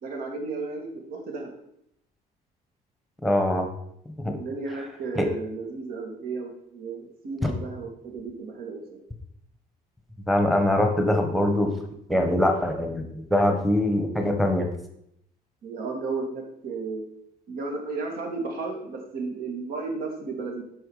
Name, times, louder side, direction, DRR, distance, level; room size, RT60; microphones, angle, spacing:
voice 1, 0.0-1.5 4.3-9.0 15.6-17.0 17.5-20.6, right 4 dB, 65° right, 2 dB, 2.4 m, -34 dB
voice 2, 3.2-3.7 4.2-4.4 5.2-5.3 7.4-7.5 10.3-11.7 12.1-14.7, left 1 dB, ahead, 4 dB, 1.2 m, -23 dB
9.1 x 6.1 x 4.9 m, 0.75 s
cardioid pair, 170°, 16 cm